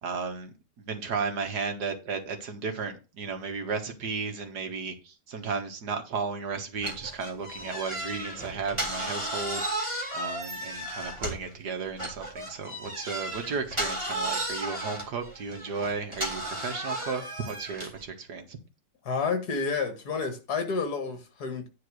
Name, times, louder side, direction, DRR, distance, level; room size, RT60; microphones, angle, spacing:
voice 1, 0.0-18.6, right 5 dB, 65° right, 2.0 m, -34 dB
sound 1, 6.8-11.5 12.0-18.0, right 1 dB, 15° right, 2.5 m, -34 dB
voice 2, 19.0-21.7, left 5 dB, 60° left, 2.3 m, -30 dB
9.9 x 4.1 x 6.4 m
omnidirectional pair, 1.9 m